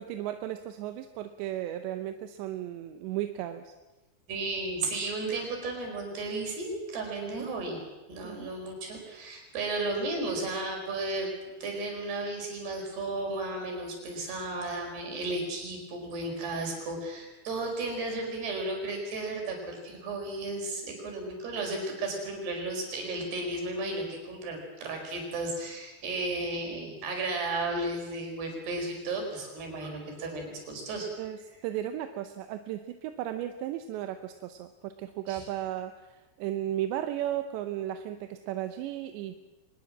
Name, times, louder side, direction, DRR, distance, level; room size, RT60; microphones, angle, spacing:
voice 1, 0.0-3.7 7.3-7.5 8.2-8.5 31.2-39.4, right 12 dB, 90° right, 8 dB, 3.2 m, -35 dB
voice 2, 4.3-7.8 8.1-11.3 11.6-31.1 35.3-35.4, right 2 dB, 70° right, 2 dB, 6.9 m, -34 dB
24.0 x 20.0 x 7.4 m, 1.1 s
omnidirectional pair, 5.0 m